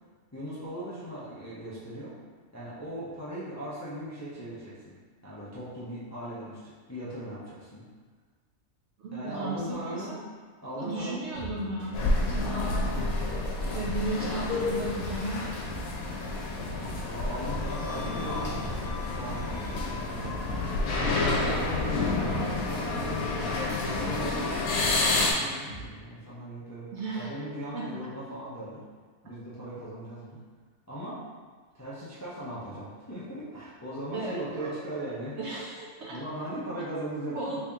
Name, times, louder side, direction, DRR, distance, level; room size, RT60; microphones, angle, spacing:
voice 1, 0.3-2.1 2.5-5.0 5.2-7.8 9.1-10.2 10.6-11.3 12.4-13.1 17.0-20.6 21.3-22.2 22.5-23.3 23.8-28.8 29.2-30.4 30.9-31.2 31.7-35.4 36.1-37.6, right 1 dB, 20° left, -10 dB, 0.4 m, -39 dB
voice 2, 9.0-10.2 10.8-12.9 13.7-15.9 26.9-27.4 27.7-27.9 34.1-34.8 35.4-36.2 37.3-37.6, right 2 dB, 65° right, -4 dB, 0.7 m, -35 dB
sound 1, 11.3-14.0 14.3-17.0 17.3-20.6 20.9-21.3 21.6-24.3 24.5-25.0 25.2-25.9, right 1 dB, 50° right, 1.2 m, -43 dB
sound 2, 11.9-25.3, left 2 dB, 90° left, 1.1 m, -29 dB
3.4 x 2.8 x 3.5 m, 1.5 s
omnidirectional pair, 1.5 m